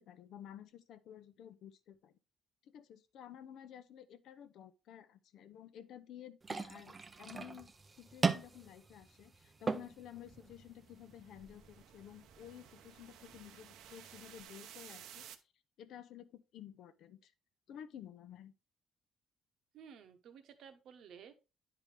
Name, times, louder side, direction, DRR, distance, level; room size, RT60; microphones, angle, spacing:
voice 1, 0.0-2.1 2.6-15.3 15.8-17.3 17.7-18.5, left 10 dB, 60° left, 0.7 m, -53 dB
sound 1, 6.4-14.4, right 4 dB, 20° right, 0.5 m, -41 dB
sound 2, 9.4-15.4, right 10 dB, 80° right, 0.8 m, -56 dB
voice 2, 19.7-21.3, right 7 dB, 55° right, 1.0 m, -54 dB
10.0 x 4.8 x 3.3 m
cardioid pair, 165°, 0 cm